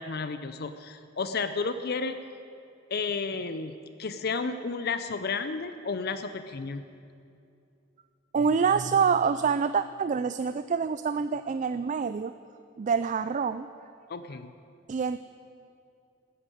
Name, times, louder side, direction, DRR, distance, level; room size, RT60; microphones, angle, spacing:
voice 1, 0.0-2.2 2.9-6.8 14.1-14.5, left 4 dB, 55° left, 11 dB, 0.6 m, -32 dB
voice 2, 8.3-12.3 12.8-13.7 14.9-15.2, right 6 dB, 40° right, 12 dB, 0.3 m, -26 dB
13.5 x 10.0 x 9.1 m, 2.6 s
head